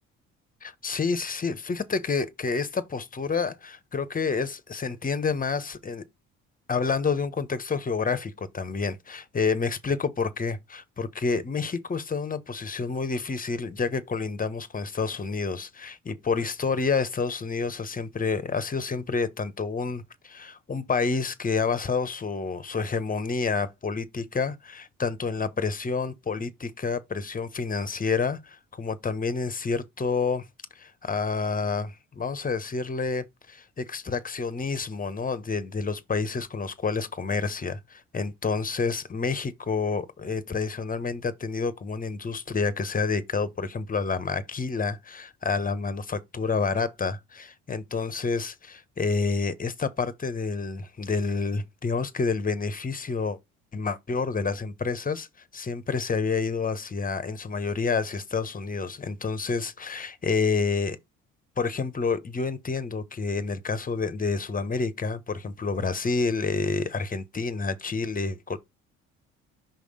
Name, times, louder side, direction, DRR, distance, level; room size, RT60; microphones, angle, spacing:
voice 1, 0.6-6.0 6.7-30.5 30.7-53.4 53.7-55.3 55.5-61.0 61.6-68.6, left 4 dB, 30° left, 1.1 m, -29 dB
5.9 x 3.4 x 5.6 m
supercardioid pair, 65°, 29 cm